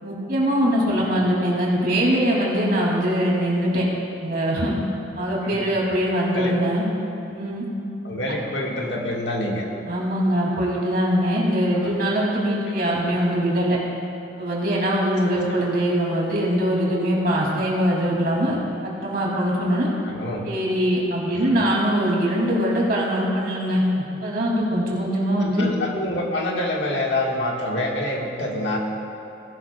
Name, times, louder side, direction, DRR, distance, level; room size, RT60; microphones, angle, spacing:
voice 1, 0.0-3.8 4.2-4.7 5.1-6.9 7.3-7.6 9.9-13.8 14.4-18.6 18.8-19.9 20.4-23.9 24.2-25.6, equal, 55° right, -4 dB, 2.8 m, -22 dB
voice 2, 8.0-9.7 11.8-11.9 20.0-20.4 21.3-21.6 25.4-28.8, left 1 dB, 80° left, -2 dB, 1.7 m, -26 dB
18.0 x 11.5 x 2.4 m, 2.8 s
head